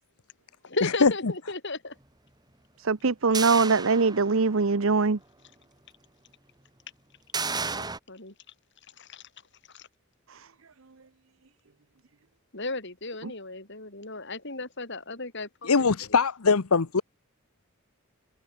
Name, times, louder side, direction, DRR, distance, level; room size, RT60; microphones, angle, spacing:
voice 1, 0.6-1.9 7.7-8.3 9.0-9.2 9.7-9.9 12.5-15.7, left 2 dB, 55° left, 6.5 m, -35 dB
voice 2, 2.8-5.2 10.3-10.5, right 4 dB, 65° right, 0.8 m, -23 dB
sound 1, 3.3-4.6 5.1-5.2 7.3-8.0, right 4 dB, 20° right, 2.5 m, -32 dB
voice 3, 15.6-17.0, left 4 dB, 80° left, 0.9 m, -22 dB
head